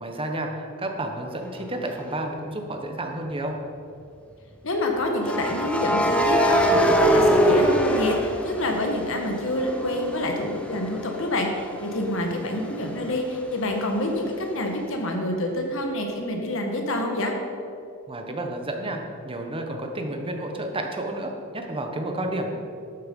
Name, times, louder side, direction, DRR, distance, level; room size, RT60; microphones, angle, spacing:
voice 1, 0.0-3.6 18.1-22.5, right 1 dB, 25° right, 3 dB, 1.3 m, -31 dB
sound 1, 1.9-2.1 5.2-9.1 9.5-13.1, equal, 5° left, 1.0 m, -23 dB
voice 2, 4.6-17.3, left 1 dB, 65° left, 3 dB, 1.6 m, -27 dB
12.0 x 9.0 x 5.5 m, 2.6 s
head